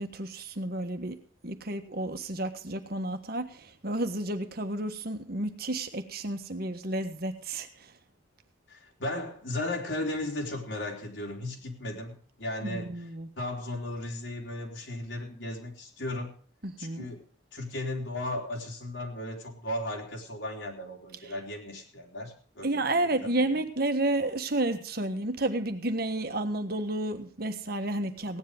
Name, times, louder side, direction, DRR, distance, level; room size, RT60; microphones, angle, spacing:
voice 1, 0.0-7.9 12.6-13.3 16.6-17.1 22.6-28.4, right 1 dB, 50° right, 8 dB, 1.5 m, -31 dB
voice 2, 8.7-12.9 13.4-16.3 16.8-17.2 17.5-22.7 23.0-23.2, left 1 dB, 70° left, -1 dB, 3.9 m, -35 dB
16.5 x 10.5 x 5.2 m, 0.43 s
head